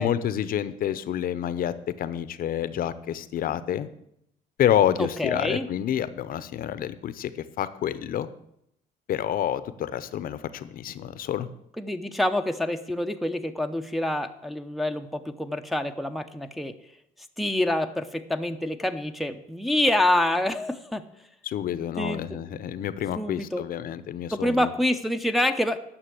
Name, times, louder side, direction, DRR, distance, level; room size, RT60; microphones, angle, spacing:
voice 1, 0.0-3.9 4.6-8.3 9.1-11.5 21.4-24.7, left 10 dB, 60° left, 14 dB, 0.7 m, -28 dB
voice 2, 5.0-5.7 11.8-16.7 17.4-21.0 21.7-22.4 23.2-23.6 24.3-25.8, left 1 dB, ahead, 5 dB, 0.7 m, -27 dB
9.9 x 6.2 x 7.7 m, 0.78 s
cardioid pair, 110°, 17 cm